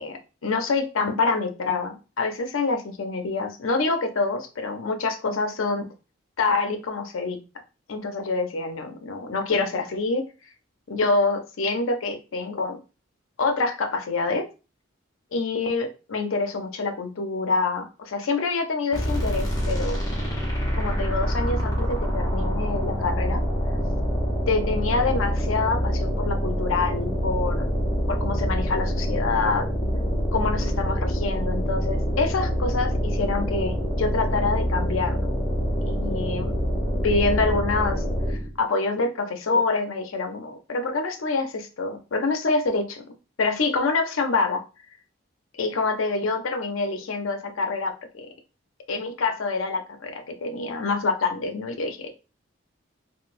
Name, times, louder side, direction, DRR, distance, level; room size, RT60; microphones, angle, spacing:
voice 1, 0.0-5.9 6.4-7.4 7.9-10.2 10.9-12.8 13.4-14.4 15.3-20.0 20.8-23.4 24.5-27.7 28.1-29.7 30.3-35.4 35.9-36.6 37.0-43.0 43.4-44.6 45.5-48.3 48.9-52.1, left 3 dB, 85° left, 6 dB, 0.6 m, -26 dB
sound 1, 18.9-38.6, equal, 20° left, 0.7 m, -26 dB
3.8 x 2.1 x 2.5 m, 0.32 s
head